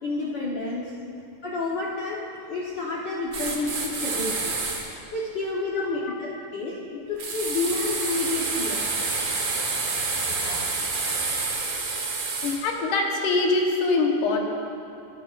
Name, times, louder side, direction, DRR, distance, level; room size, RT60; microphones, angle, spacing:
voice 1, 0.0-0.9 1.4-4.7 5.1-6.8 7.1-8.8 10.3-10.8, left 3 dB, 65° left, -5 dB, 1.1 m, -30 dB
sound 1, 3.3-4.8 7.2-12.6, right 3 dB, 50° right, 1.6 m, -28 dB
voice 2, 12.4-14.5, left 3 dB, 90° left, 1 dB, 2.7 m, -24 dB
23.0 x 9.8 x 2.5 m, 2.7 s
omnidirectional pair, 3.5 m